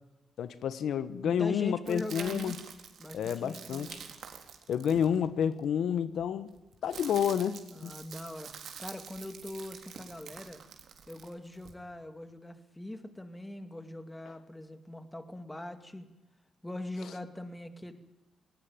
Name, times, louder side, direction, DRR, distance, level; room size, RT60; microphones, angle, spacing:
voice 1, 0.4-2.6 3.1-4.0 4.7-6.5 6.8-7.9, left 8 dB, 80° left, 14 dB, 1.2 m, -30 dB
voice 2, 1.2-2.6 3.0-4.0 7.7-8.5 8.8-10.6 11.1-16.1 16.6-17.9, left 1 dB, 10° left, 9 dB, 2.4 m, -41 dB
sound 1, 1.9-5.6 6.5-11.7, right 7 dB, 70° right, 3.8 m, -47 dB
19.5 x 19.5 x 9.0 m, 0.98 s
cardioid pair, 115°, 0 cm